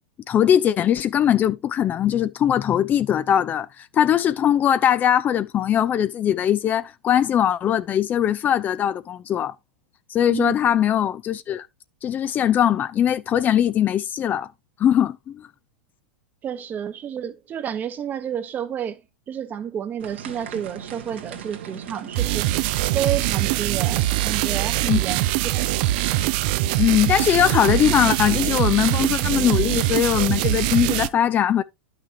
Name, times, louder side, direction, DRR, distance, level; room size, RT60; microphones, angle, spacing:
voice 1, 0.3-9.5 10.1-11.7 12.0-14.5 14.8-15.5 24.9-25.0 26.8-31.6, left 10 dB, 30° left, 0.5 m, -20 dB
voice 2, 16.4-19.0 19.3-22.5 22.9-25.2 25.5-25.7, right 9 dB, 30° right, 1.0 m, -30 dB
sound 1, 20.0-28.4, right 8 dB, 75° right, 1.6 m, -37 dB
sound 2, 22.2-31.1, right 16 dB, 55° right, 0.5 m, -23 dB
11.0 x 5.9 x 2.9 m
hypercardioid pair, 100°, 6 cm